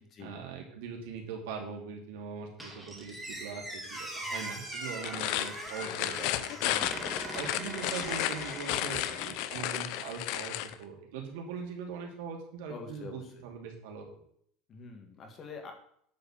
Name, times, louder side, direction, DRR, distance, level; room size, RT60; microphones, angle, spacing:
voice 1, 0.2-6.5 6.9-7.0 7.3-14.0, right 6 dB, 85° right, 1 dB, 2.7 m, -41 dB
Squeak, 2.6-9.5, right 1 dB, 5° right, 2.3 m, -41 dB
sound 1, 4.9-10.7, left 13 dB, 60° left, 0.7 m, -33 dB
voice 2, 6.6-6.9 12.7-13.3 14.7-15.7, left 4 dB, 30° left, 4 dB, 1.9 m, -45 dB
9.1 x 4.9 x 7.3 m, 0.67 s
cardioid pair, 155°, 0 cm